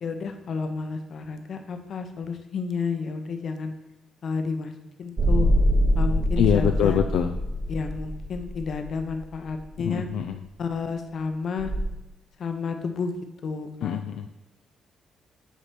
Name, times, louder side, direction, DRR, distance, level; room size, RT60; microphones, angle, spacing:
voice 1, 0.0-3.7 4.2-4.7 5.0-5.5 6.0-7.0 7.7-10.1 10.6-11.7 12.4-13.1 13.4-14.0, left 5 dB, 55° left, 7 dB, 0.8 m, -31 dB
sound 1, 5.2-9.6 11.6-11.8, equal, 35° right, 0.9 m, -24 dB
voice 2, 6.4-7.4 9.8-10.4 13.8-14.3, left 8 dB, 80° left, 5 dB, 0.3 m, -24 dB
8.1 x 3.3 x 5.8 m, 0.94 s
cardioid pair, 90°, 0 cm